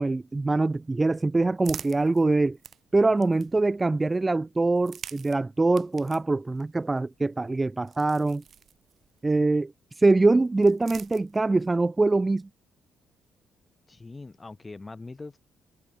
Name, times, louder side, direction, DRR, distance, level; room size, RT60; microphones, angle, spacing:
voice 1, 0.0-2.6 2.9-8.4 9.2-9.7 10.0-12.5, right 3 dB, 20° right, 0.5 m, -23 dB
sound 1, 0.8-3.8 4.7-9.3 10.2-11.7, right 7 dB, 55° right, 6.7 m, -47 dB
voice 2, 13.9-15.4, left 3 dB, 25° left, 1.5 m, -42 dB
cardioid pair, 90°, 0 cm